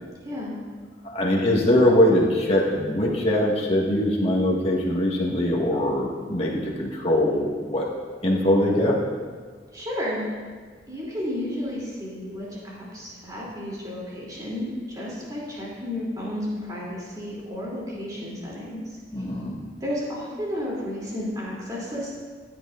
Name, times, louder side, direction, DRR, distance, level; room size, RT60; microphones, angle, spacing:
voice 1, 0.2-0.6 9.7-10.3 10.9-18.8 19.8-22.2, left 1 dB, 20° right, -6 dB, 3.0 m, -32 dB
voice 2, 1.0-7.9 8.2-9.0 19.1-19.5, left 1 dB, 35° left, -3 dB, 1.7 m, -22 dB
15.5 x 9.1 x 2.6 m, 1.5 s
head